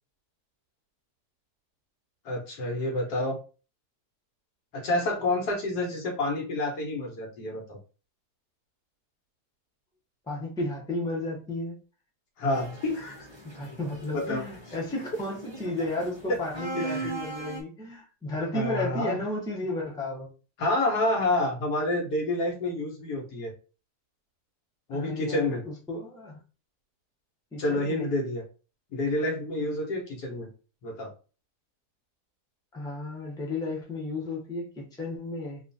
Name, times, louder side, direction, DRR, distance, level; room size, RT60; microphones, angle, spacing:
voice 1, 2.2-3.4 4.7-7.8 12.4-13.3 14.1-14.4 16.8-17.1 18.5-19.1 20.6-23.5 24.9-25.6 27.6-28.4 28.9-30.5 30.8-31.1, left 2 dB, 80° left, 2 dB, 1.5 m, -28 dB
voice 2, 10.3-11.8 13.5-20.3 24.9-26.4 27.5-28.1 32.7-35.6, left 2 dB, 5° left, -2 dB, 0.7 m, -33 dB
sound 1, 12.5-17.6, right 3 dB, 35° right, 0.4 m, -39 dB
3.0 x 2.4 x 3.9 m, 0.35 s
omnidirectional pair, 1.7 m